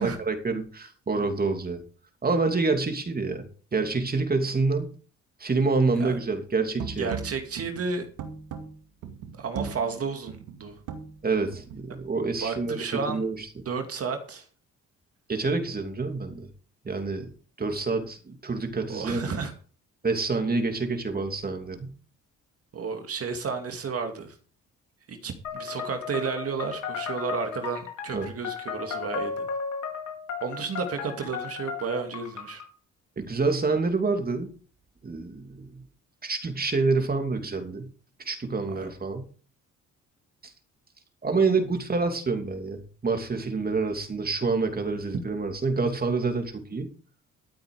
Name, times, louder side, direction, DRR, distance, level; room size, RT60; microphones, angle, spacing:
voice 1, 0.0-1.8 2.2-4.8 5.4-7.1 11.2-13.5 15.3-16.5 16.8-17.3 17.6-19.3 20.0-21.9 28.1-28.3 33.2-34.5 35.0-35.8 36.2-37.9 38.2-39.2 41.2-46.9, right 3 dB, 30° right, 6 dB, 3.0 m, -27 dB
sound 1, 6.7-11.9, right 6 dB, 90° right, 2.3 m, -39 dB
voice 2, 7.0-8.1 9.4-10.8 12.4-13.2 13.7-14.5 18.9-19.5 22.7-24.4 25.1-29.5 30.4-32.6 38.8-38.9 45.1-45.2, right 5 dB, 50° right, 5 dB, 2.4 m, -32 dB
sound 2, 25.4-32.7, left 6 dB, 70° left, 4.5 m, -35 dB
13.0 x 8.8 x 5.0 m, 0.40 s
cardioid pair, 90°, 30 cm